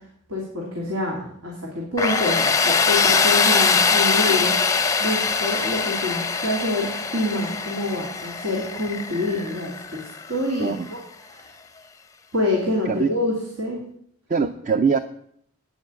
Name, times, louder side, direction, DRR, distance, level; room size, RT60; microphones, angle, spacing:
voice 1, 0.3-4.5 5.0-11.0 11.3-11.5 12.3-13.8, left 2 dB, 85° right, -2 dB, 2.6 m, -26 dB
Tools, 2.0-10.7, left 5 dB, 15° left, 0.5 m, -22 dB
voice 2, 14.3-15.0, right 5 dB, 35° right, 10 dB, 0.5 m, -22 dB
9.3 x 7.2 x 8.3 m, 0.67 s
head